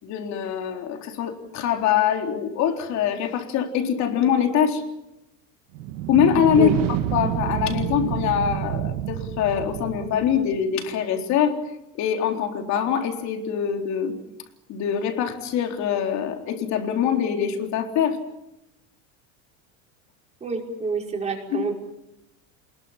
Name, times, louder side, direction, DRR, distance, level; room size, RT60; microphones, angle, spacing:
voice 1, 0.0-4.8 6.1-6.7 7.1-11.6 12.0-14.1 14.7-18.2 21.5-21.6, left 9 dB, 45° left, 4 dB, 3.9 m, -23 dB
sound 1, 5.7-10.6, right 13 dB, 70° right, 1.6 m, -28 dB
voice 2, 20.4-21.7, right 4 dB, 15° right, 0 dB, 5.3 m, -28 dB
28.0 x 21.5 x 7.4 m, 0.90 s
cardioid pair, 155°, 38 cm